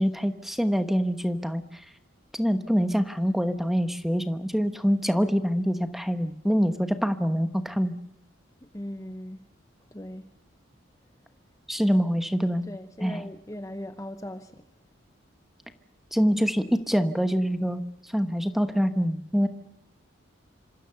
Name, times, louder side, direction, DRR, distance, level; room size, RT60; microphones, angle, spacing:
voice 1, 0.0-1.8 2.3-7.9 11.7-12.7 13.0-13.2 16.1-19.5, equal, ahead, 1.2 m, -25 dB
voice 2, 8.7-9.4 9.9-10.3 12.7-14.6, left 1 dB, 15° left, 0.9 m, -38 dB
27.5 x 25.5 x 6.9 m
head